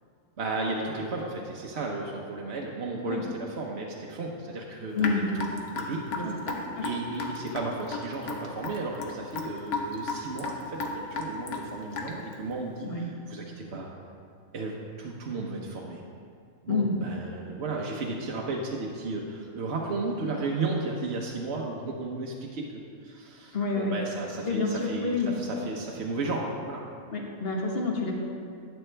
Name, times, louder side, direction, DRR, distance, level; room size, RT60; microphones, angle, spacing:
voice 1, 0.4-6.4 6.8-13.9 14.5-16.0 16.6-26.8, right 3 dB, 55° right, -1 dB, 1.1 m, -34 dB
voice 2, 4.9-5.2 6.2-6.9 12.8-13.1 16.7-17.0 23.5-24.0 24.5-25.3 27.1-28.1, left 3 dB, 45° left, -1 dB, 1.5 m, -28 dB
Raindrop / Drip, 5.0-12.3, left 3 dB, 75° left, 1.4 m, -34 dB
12.0 x 8.9 x 3.3 m, 2.3 s
omnidirectional pair, 1.5 m